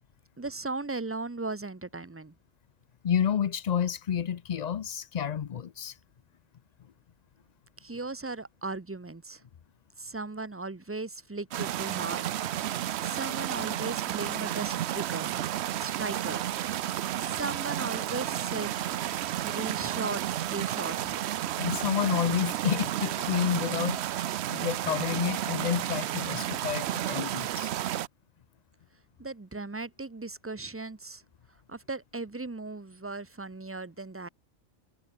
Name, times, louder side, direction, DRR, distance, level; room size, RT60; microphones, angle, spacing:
voice 1, 0.4-2.3 7.8-9.4 10.0-12.3 12.7-15.4 15.8-16.4 17.2-18.8 19.4-20.2 20.5-21.2 29.2-31.2 31.7-34.3, right 3 dB, 20° right, 0.3 m, -37 dB
voice 2, 3.0-5.9 21.6-27.7, left 8 dB, 70° left, 0.4 m, -30 dB
sound 1, 11.5-28.1, right 12 dB, 60° right, 0.7 m, -32 dB
omnidirectional pair, 1.4 m